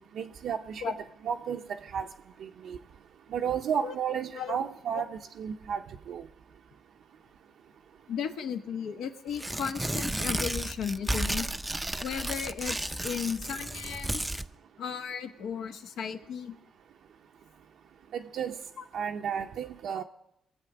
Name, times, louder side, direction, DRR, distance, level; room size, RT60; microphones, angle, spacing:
voice 1, 0.1-0.9 1.2-2.0 2.4-2.8 3.3-5.8 6.1-6.2 18.1-18.6 18.9-20.0, right 7 dB, 70° right, 2 dB, 0.6 m, -33 dB
voice 2, 8.1-11.5 12.0-14.4 14.8-16.5, left 7 dB, 80° left, 6 dB, 1.1 m, -35 dB
Tearing, 9.3-14.5, right 1 dB, 10° right, 0.4 m, -33 dB
22.0 x 7.7 x 4.9 m, 0.81 s
cardioid pair, 90°, 0 cm